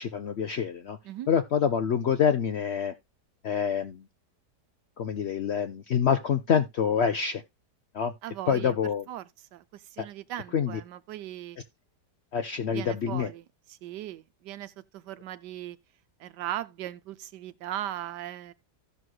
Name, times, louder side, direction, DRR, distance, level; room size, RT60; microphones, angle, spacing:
voice 1, 0.0-1.0 1.3-2.9 3.4-4.0 5.0-7.4 7.9-8.1 8.5-9.0 10.0-10.1 10.5-10.8 12.3-13.3, left 7 dB, 65° left, 0.6 m, -26 dB
voice 2, 8.2-8.8 9.1-11.6 12.6-15.8 16.2-18.5, right 12 dB, 85° right, 1.3 m, -38 dB
15.5 x 6.2 x 2.2 m
omnidirectional pair, 1.8 m